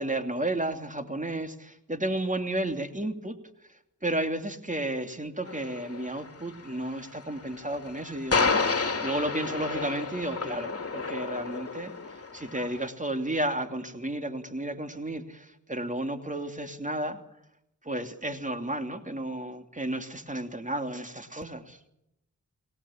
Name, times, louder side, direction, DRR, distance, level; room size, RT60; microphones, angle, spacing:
voice 1, 0.0-3.4 4.0-11.9 12.3-17.2 17.8-21.8, right 1 dB, 25° right, 7 dB, 2.8 m, -32 dB
sound 1, 5.4-12.9, left 4 dB, 50° left, 2.7 m, -31 dB
28.5 x 18.5 x 7.3 m, 0.82 s
cardioid pair, 55°, 32 cm